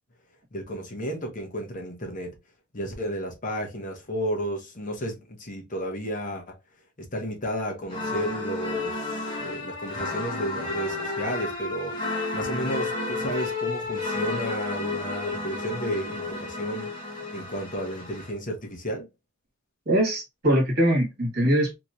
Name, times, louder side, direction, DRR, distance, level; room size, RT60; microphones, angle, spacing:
voice 1, 0.5-2.3 2.7-6.6 7.0-11.9 12.3-16.9 17.3-19.1, equal, 40° left, 0.9 m, -32 dB
sound 1, 7.9-18.3, left 3 dB, 25° left, 1.2 m, -32 dB
voice 2, 19.8-21.7, right 1 dB, 50° right, 1.6 m, -22 dB
2.9 x 2.9 x 2.5 m
head